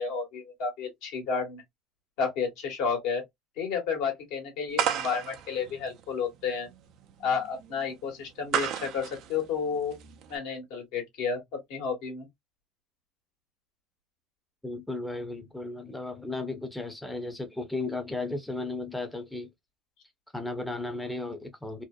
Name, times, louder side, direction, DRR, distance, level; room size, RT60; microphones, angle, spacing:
voice 1, 0.0-1.6 2.2-3.2 3.6-6.7 7.2-10.0 10.3-12.3, left 6 dB, 70° left, 1.3 m, -31 dB
sound 1, 4.7-10.4, right 9 dB, 60° right, 0.5 m, -33 dB
voice 2, 14.6-19.5 20.3-21.8, left 2 dB, 5° left, 0.6 m, -35 dB
2.7 x 2.1 x 2.3 m
hypercardioid pair, 80°, 0 cm